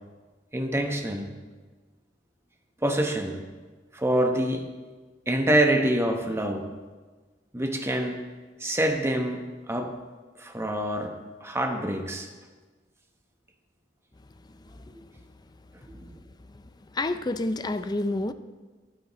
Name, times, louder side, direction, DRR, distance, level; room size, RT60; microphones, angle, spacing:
voice 1, 0.5-1.3 2.8-3.4 3.9-4.7 5.3-6.7 7.5-8.2 8.6-10.0 10.4-12.3 15.9-16.1, right 1 dB, 15° right, 1.1 m, -26 dB
voice 2, 14.5-15.1 16.5-16.6 16.9-18.3, left 2 dB, 25° left, 0.5 m, -30 dB
19.0 x 9.6 x 3.1 m
head